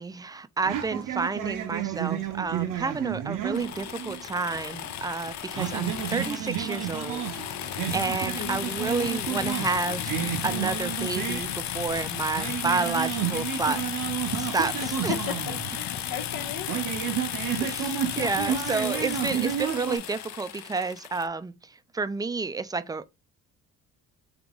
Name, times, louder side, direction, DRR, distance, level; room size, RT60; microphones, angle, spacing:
voice 1, 0.0-7.2 7.5-13.8 14.4-14.8 15.0-15.1 17.6-21.5 21.9-23.1, right 4 dB, 10° right, 0.3 m, -30 dB
sound 1, 0.6-5.0 5.3-20.0, right 10 dB, 70° right, 0.8 m, -32 dB
sound 2, 3.5-21.3, left 11 dB, 60° left, 0.5 m, -34 dB
voice 2, 8.4-8.8 14.8-16.7, left 8 dB, 80° left, 1.1 m, -36 dB
3.8 x 2.9 x 3.6 m
cardioid pair, 90°, 33 cm